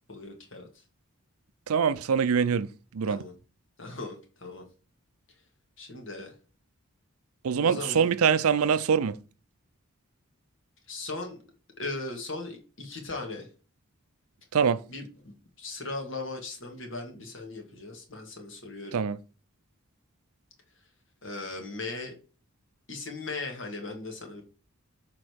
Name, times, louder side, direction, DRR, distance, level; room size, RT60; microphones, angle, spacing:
voice 1, 0.1-0.8 3.1-3.3 3.8-4.6 5.8-6.3 7.5-8.1 10.9-11.4 11.8-13.5 14.9-19.0 21.2-22.2 22.9-24.4, left 3 dB, 60° left, 1.8 m, -38 dB
voice 2, 1.7-2.7 2.9-3.2 7.4-9.2 14.5-14.8 18.9-19.2, right 6 dB, 80° right, 0.4 m, -24 dB
6.3 x 3.8 x 4.6 m
head